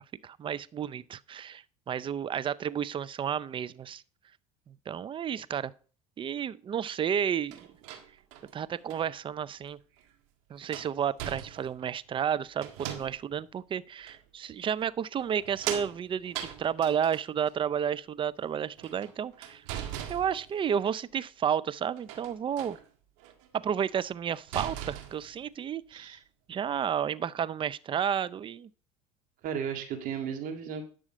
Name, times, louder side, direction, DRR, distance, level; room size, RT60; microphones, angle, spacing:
voice 1, 0.2-4.0 4.7-5.7 6.2-7.7 8.5-9.8 10.5-19.6 20.1-22.8 23.5-26.2 26.5-28.7, right 8 dB, 30° right, 0.5 m, -31 dB
sound 1, 7.5-9.1 10.0-10.1 10.6-11.9 12.6-13.4 14.1-14.2 15.2-17.5 18.7-20.8 22.0-22.8 23.2-23.5 23.9-24.0 24.3-25.4, right 10 dB, 75° right, 1.7 m, -40 dB
voice 2, 29.4-30.8, right 7 dB, 60° right, 1.9 m, -34 dB
11.0 x 6.4 x 5.0 m
hypercardioid pair, 85°, 16 cm